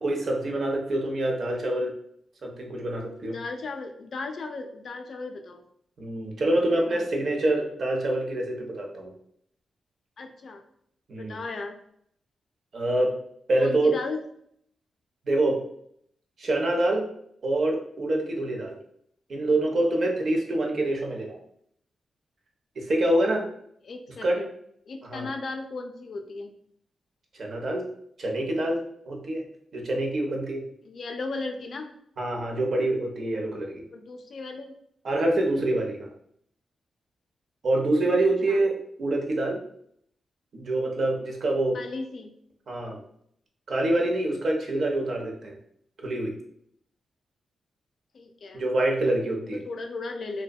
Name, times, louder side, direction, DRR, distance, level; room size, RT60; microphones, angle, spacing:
voice 1, 0.0-1.9 2.4-3.4 6.0-9.1 11.1-11.4 12.7-13.2 13.5-13.9 15.3-15.6 16.4-17.1 17.4-18.8 19.3-21.4 22.8-23.5 24.2-24.4 25.0-25.3 27.3-27.8 28.2-29.5 29.7-30.6 32.2-33.8 35.0-36.1 37.6-39.6 40.5-41.8 42.7-43.0 43.7-45.6 46.0-46.4 48.5-49.6, right 1 dB, 60° right, 0 dB, 0.6 m, -26 dB
voice 2, 3.2-5.6 6.9-7.1 10.2-10.6 11.1-11.8 13.6-14.2 23.8-24.5 24.9-26.5 30.9-31.9 33.9-34.7 38.5-38.6 41.7-42.3 48.1-48.6 49.6-50.4, left 3 dB, 65° left, 5 dB, 0.3 m, -36 dB
2.6 x 2.1 x 2.2 m, 0.68 s
cardioid pair, 70°, 0 cm